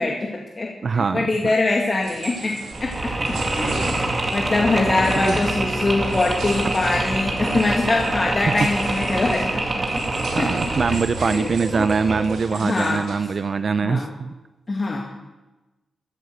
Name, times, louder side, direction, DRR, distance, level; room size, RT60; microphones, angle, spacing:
voice 1, 0.0-2.9 3.3-3.9 4.3-9.6 10.4-10.5 10.9-11.5 11.8-11.9 12.5-13.0 13.8-14.1 14.7-15.0, left 2 dB, 35° left, -1 dB, 2.0 m, -23 dB
voice 2, 0.8-1.3 5.3-5.4 5.6-5.7 7.5-7.6 10.3-14.3, right 5 dB, 50° right, 12 dB, 0.6 m, -23 dB
sound 1, 2.0-13.2, right 3 dB, 85° right, 3.0 m, -38 dB
Mechanisms, 2.7-12.5, right 2 dB, 30° right, 2.5 m, -26 dB
13.5 x 11.0 x 7.9 m, 1.1 s
cardioid pair, 100°, 0 cm